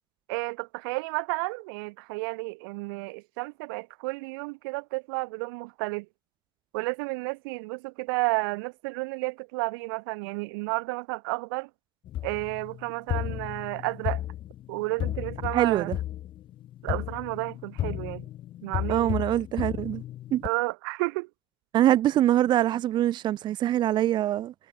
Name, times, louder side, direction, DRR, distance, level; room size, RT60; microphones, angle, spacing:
voice 1, 0.3-6.1 6.7-11.7 12.2-14.2 14.7-15.9 16.8-18.2 18.6-19.1 20.4-21.3, right 28 dB, 65° right, 1.2 m, -31 dB
sound 1, 12.1-20.5, left 13 dB, 40° left, 3.7 m, -34 dB
voice 2, 15.5-16.0 18.9-20.0 20.3-20.4 21.7-24.5, right 12 dB, 35° right, 0.9 m, -24 dB
hypercardioid pair, 110°, 13 cm